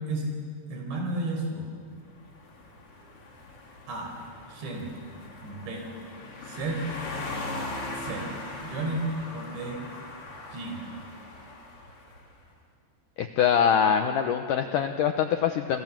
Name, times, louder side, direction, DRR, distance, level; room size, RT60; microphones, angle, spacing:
voice 1, 0.7-1.7 3.9-4.2 4.5-4.9 5.4-5.9 6.4-6.8 8.0-8.3 8.6-9.8 10.5-10.8, right 2 dB, 75° right, 2 dB, 7.1 m, -32 dB
sound 1, 2.0-12.3, left 2 dB, 35° left, 3.7 m, -40 dB
voice 2, 13.2-15.8, left 8 dB, 85° left, 6 dB, 1.8 m, -24 dB
28.0 x 26.5 x 7.5 m, 2.2 s
omnidirectional pair, 5.1 m